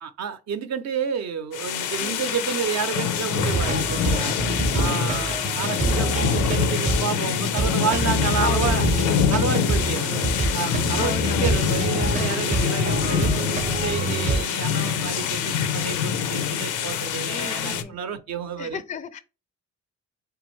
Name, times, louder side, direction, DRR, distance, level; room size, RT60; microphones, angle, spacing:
voice 1, 0.0-4.4 4.7-8.8 9.3-13.3 13.6-18.8, right 7 dB, 60° right, 0.6 m, -30 dB
sound 1, 1.5-17.8, left 8 dB, 90° left, 0.6 m, -25 dB
sound 2, 3.4-14.4, right 3 dB, 25° right, 0.6 m, -27 dB
voice 2, 8.4-8.9 11.0-11.6 17.3-18.0 18.6-19.2, left 7 dB, 25° left, 0.3 m, -33 dB
3.6 x 3.4 x 3.0 m
cardioid pair, 90°, 30 cm